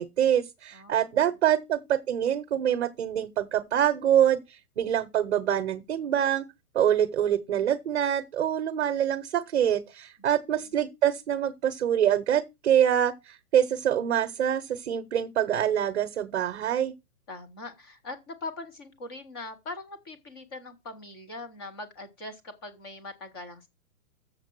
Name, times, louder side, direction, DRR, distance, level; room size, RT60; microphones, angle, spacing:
voice 1, 0.0-6.4 6.7-16.9, right 10 dB, 45° right, 0.9 m, -25 dB
voice 2, 0.7-1.2 10.6-10.7 17.3-23.7, left 2 dB, 15° left, 0.8 m, -41 dB
7.2 x 6.7 x 5.9 m
hypercardioid pair, 175°, 44 cm